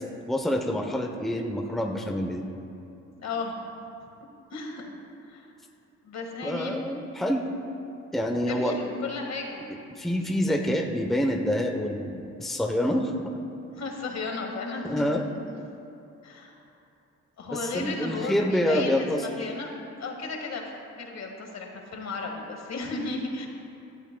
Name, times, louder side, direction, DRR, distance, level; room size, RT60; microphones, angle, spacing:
voice 1, 0.3-2.5 6.4-7.4 8.1-8.8 10.0-13.1 14.8-15.2 17.5-19.5, equal, ahead, 2 dB, 0.8 m, -27 dB
voice 2, 3.2-3.6 4.5-4.9 5.3-5.5 6.0-6.8 8.4-10.0 13.7-15.2 16.2-16.6 17.4-19.7 20.0-20.6 21.0-23.5, left 3 dB, 60° left, 2 dB, 1.8 m, -34 dB
17.0 x 12.0 x 2.3 m, 2.8 s
cardioid pair, 90°, 30 cm